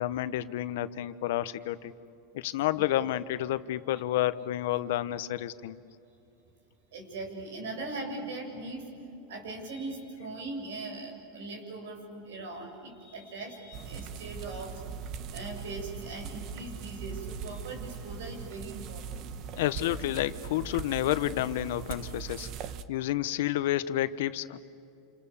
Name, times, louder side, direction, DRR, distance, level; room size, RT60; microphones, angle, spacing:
voice 1, 0.0-1.9 2.3-5.8 19.6-22.5 22.9-24.6, left 13 dB, 75° left, 14 dB, 1.0 m, -30 dB
voice 2, 6.9-8.8 9.3-14.8 15.3-19.3, right 2 dB, 85° right, 2 dB, 7.6 m, -40 dB
sound 1, 13.7-22.8, right 6 dB, 45° right, 1.2 m, -40 dB
28.5 x 28.5 x 7.2 m, 2.8 s
supercardioid pair, 130°, 0 cm